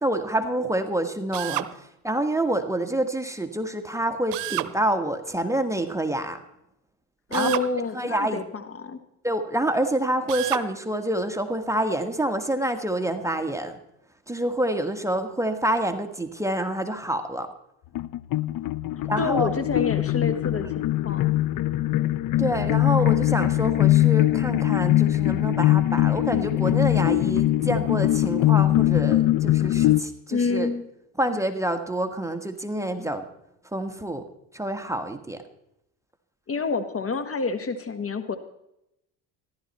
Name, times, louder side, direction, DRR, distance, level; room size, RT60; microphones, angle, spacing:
voice 1, 0.0-1.7 2.0-6.4 7.3-7.5 7.9-8.4 9.2-13.8 14.3-17.5 19.1-19.5 20.6-20.7 22.4-30.7 31.2-33.2 33.7-34.2 34.5-35.4, right 1 dB, 5° right, 6 dB, 1.5 m, -27 dB
Drill, 1.3-1.7 4.3-4.7 7.3-7.7 10.3-10.7, right 19 dB, 70° right, 0.8 m, -29 dB
voice 2, 7.3-9.0 19.2-21.3 30.3-30.9 31.3-31.4 36.5-38.4, left 4 dB, 30° left, 10 dB, 1.4 m, -28 dB
sound 1, 18.0-30.0, left 15 dB, 45° left, 0.6 m, -22 dB
14.5 x 12.0 x 4.2 m, 0.82 s
supercardioid pair, 80°, 44 cm